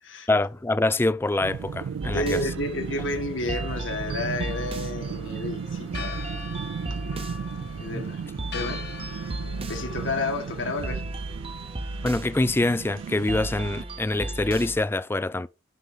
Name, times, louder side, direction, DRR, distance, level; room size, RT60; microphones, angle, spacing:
voice 1, 0.3-2.4 7.9-8.0 12.0-15.5, left 2 dB, 10° left, 0.3 m, -25 dB
sound 1, 1.4-13.8, right 6 dB, 75° right, 0.3 m, -35 dB
sound 2, 2.0-14.8, right 2 dB, 30° right, 0.8 m, -36 dB
voice 2, 2.1-6.2 7.8-8.2 8.5-8.8 9.7-11.0, left 2 dB, 90° left, 2.0 m, -31 dB
Church bell, 4.3-10.9, left 6 dB, 60° left, 1.1 m, -43 dB
11.5 x 4.5 x 4.0 m
head